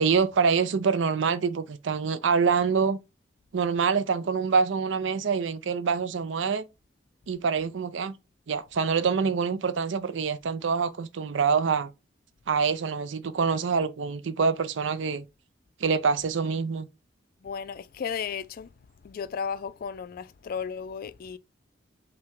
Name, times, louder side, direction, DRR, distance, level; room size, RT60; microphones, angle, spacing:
voice 1, 0.0-3.0 3.5-6.6 7.3-8.1 8.5-11.9 12.5-15.2 15.8-16.9, right 5 dB, 75° right, 0.5 m, -25 dB
voice 2, 17.4-18.7 19.0-21.4, left 6 dB, 50° left, 0.3 m, -34 dB
5.5 x 2.2 x 3.6 m
head